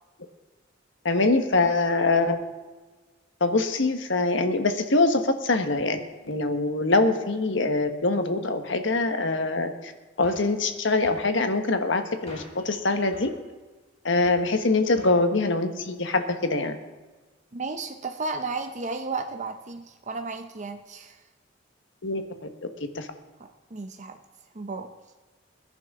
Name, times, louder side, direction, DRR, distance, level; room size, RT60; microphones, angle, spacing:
voice 1, 1.0-2.5 3.4-6.0 6.3-9.9 10.2-13.3 14.0-16.8 22.0-22.2 22.9-23.1, left 3 dB, 70° left, 7 dB, 1.3 m, -24 dB
sound 1, 10.2-10.5 11.0-11.3 12.3-12.6 13.1-13.4 14.2-14.5 15.0-15.3, left 1 dB, 30° left, 3.8 m, -45 dB
voice 2, 17.5-21.2 23.4-24.2 24.5-24.9, right 3 dB, 40° right, 6 dB, 0.7 m, -34 dB
21.5 x 10.5 x 3.7 m, 1.3 s
head